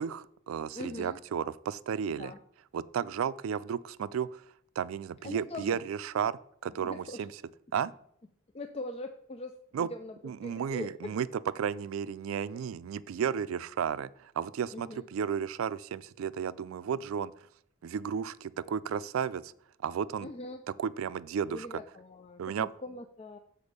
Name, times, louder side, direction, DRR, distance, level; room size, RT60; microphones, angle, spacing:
voice 1, 0.0-2.3 2.7-4.4 4.8-7.3 7.7-7.9 9.7-9.9 10.2-11.3 11.6-17.3 17.8-19.5 19.8-20.3 20.8-21.7 22.4-22.7, right 7 dB, 85° right, 17 dB, 0.3 m, -33 dB
voice 2, 0.7-1.2 2.1-2.4 5.2-5.8 6.8-7.2 8.5-11.2 14.7-15.1 20.2-20.6 21.5-23.4, left 2 dB, 30° left, 7 dB, 0.4 m, -42 dB
7.1 x 4.3 x 6.5 m, 0.69 s
head